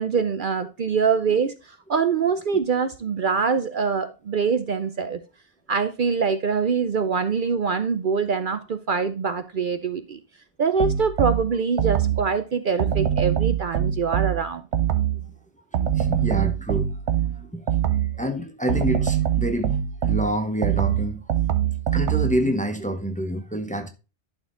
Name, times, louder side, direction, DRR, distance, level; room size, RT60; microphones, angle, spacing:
voice 1, 0.0-1.5 1.9-5.2 5.7-10.2 10.6-14.6, right 5 dB, 55° right, 0.8 m, -24 dB
sound 1, 10.8-12.3 12.8-15.3 15.7-18.2 18.7-22.5, right 10 dB, 85° right, 1.2 m, -23 dB
voice 2, 15.7-17.6 18.1-21.2 21.9-23.9, equal, 5° left, 0.9 m, -28 dB
11.5 x 4.5 x 3.7 m
omnidirectional pair, 1.1 m